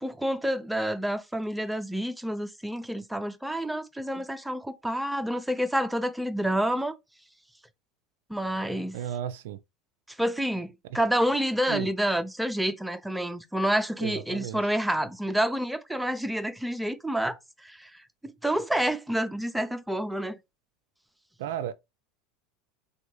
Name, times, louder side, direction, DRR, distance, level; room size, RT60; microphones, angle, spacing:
voice 1, 0.0-6.9 8.3-9.0 10.1-20.4, right 1 dB, 5° right, 0.4 m, -29 dB
voice 2, 8.9-9.6 11.7-11.9 14.0-14.6 21.4-21.7, right 10 dB, 75° right, 0.3 m, -33 dB
3.5 x 2.3 x 3.0 m
hypercardioid pair, 95°, 0 cm